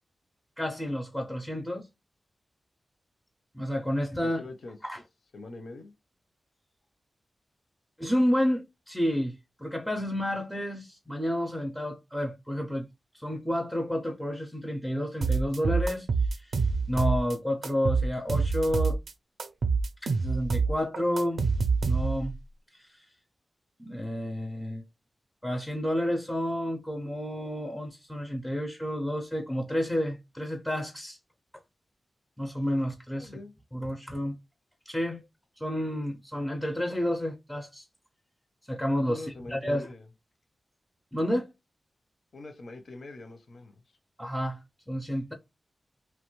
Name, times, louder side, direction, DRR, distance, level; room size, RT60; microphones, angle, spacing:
voice 1, 0.6-1.9 3.5-4.4 4.8-5.0 8.0-12.9 13.1-16.6 16.9-19.0 20.0-21.5 21.8-22.4 22.7-23.1 23.8-24.8 25.4-31.2 32.4-33.3 33.7-34.4 34.9-35.2 35.6-37.9 38.7-39.9 41.1-41.5 44.2-45.3, equal, ahead, 0.4 m, -30 dB
voice 2, 4.2-4.8 5.3-5.9 33.1-33.5 39.1-40.1 42.3-43.8, left 2 dB, 55° left, 0.5 m, -44 dB
sound 1, 15.2-17.3 17.6-19.1 19.4-22.3, right 4 dB, 65° right, 0.4 m, -26 dB
2.9 x 2.2 x 2.9 m
wide cardioid pair, 155°, 0 cm